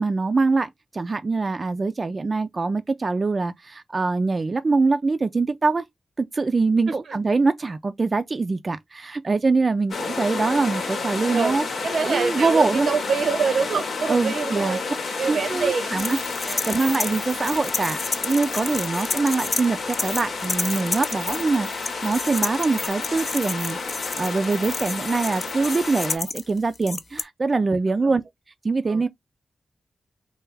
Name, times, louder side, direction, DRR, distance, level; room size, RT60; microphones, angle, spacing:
voice 1, 0.0-5.8 6.2-11.6 12.0-12.9 14.1-14.8 15.3-28.2 28.6-29.1, right 3 dB, 40° right, 0.3 m, -24 dB
sound 1, 9.9-26.2, left 4 dB, 80° left, 1.0 m, -31 dB
voice 2, 11.8-15.9 16.4-16.8 27.9-28.2 28.9-29.1, right 5 dB, 85° right, 0.7 m, -26 dB
sound 2, 16.0-19.7 19.9-27.2, left 3 dB, 45° left, 0.5 m, -30 dB
3.3 x 2.3 x 3.2 m
wide cardioid pair, 95°, 0 cm